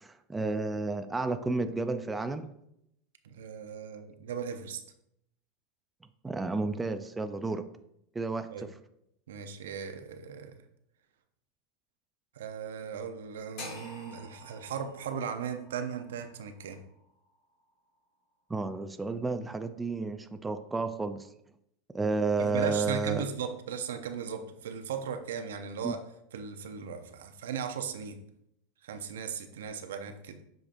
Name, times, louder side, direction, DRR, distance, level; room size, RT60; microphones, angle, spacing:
voice 1, 0.0-2.5 6.2-7.6 8.1-8.7 18.5-21.3 21.9-23.3 25.8-25.9, right 3 dB, 10° right, 9 dB, 0.4 m, -31 dB
voice 2, 3.2-4.8 8.5-8.7 9.3-10.6 12.4-16.8 22.4-26.0 26.3-28.2 28.8-30.4, right 7 dB, 85° right, 8 dB, 0.7 m, -37 dB
sound 1, 13.6-17.7, left 2 dB, 60° left, 2.3 m, -48 dB
7.7 x 5.1 x 2.6 m, 0.77 s
supercardioid pair, 115°, 0 cm